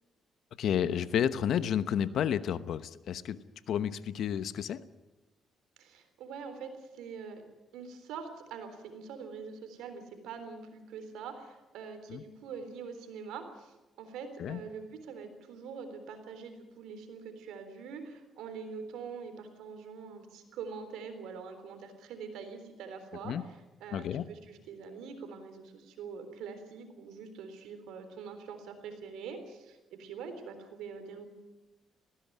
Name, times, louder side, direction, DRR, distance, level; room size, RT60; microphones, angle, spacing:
voice 1, 0.6-3.4 3.7-4.8 12.1-12.2 14.4-14.6 23.2-23.4 23.9-24.2, left 9 dB, 70° left, 13 dB, 1.0 m, -31 dB
voice 2, 5.8-7.4 7.7-31.3, right 5 dB, 90° right, 8 dB, 3.6 m, -44 dB
19.0 x 16.5 x 9.3 m, 1.1 s
cardioid pair, 90°, 0 cm